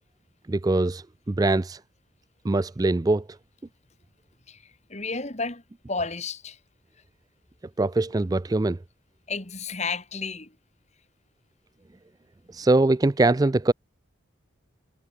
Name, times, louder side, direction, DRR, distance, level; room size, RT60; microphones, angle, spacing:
voice 1, 0.5-1.8 2.4-3.3 7.8-8.8 12.5-13.7, right 2 dB, 20° right, 0.3 m, -22 dB
voice 2, 4.5-5.6 5.9-6.6 9.3-10.6, left 4 dB, 35° left, 2.6 m, -32 dB
head